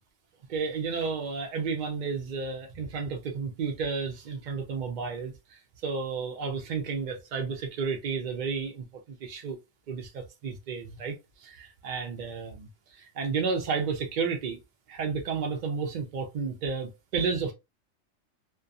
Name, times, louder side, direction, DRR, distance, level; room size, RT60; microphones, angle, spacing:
voice 1, 0.5-9.6 9.9-14.6 14.9-17.5, right 5 dB, 75° right, 0.4 m, -32 dB
2.4 x 2.2 x 2.5 m
omnidirectional pair, 1.4 m